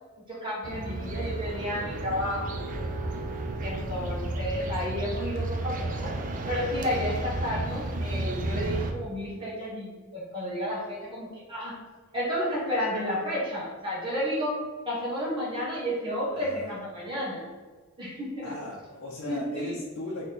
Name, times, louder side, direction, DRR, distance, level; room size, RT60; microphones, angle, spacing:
voice 1, 0.3-3.0 3.6-6.1 6.5-11.7 12.1-17.4 18.0-18.5 19.3-19.7, equal, 25° right, -7 dB, 1.3 m, -32 dB
sound 1, 0.6-8.9, right 2 dB, 40° right, 0.4 m, -32 dB
voice 2, 1.0-1.5 16.3-16.7 18.4-20.3, left 1 dB, 55° left, -4 dB, 0.7 m, -38 dB
4.2 x 3.0 x 4.0 m, 1.4 s
head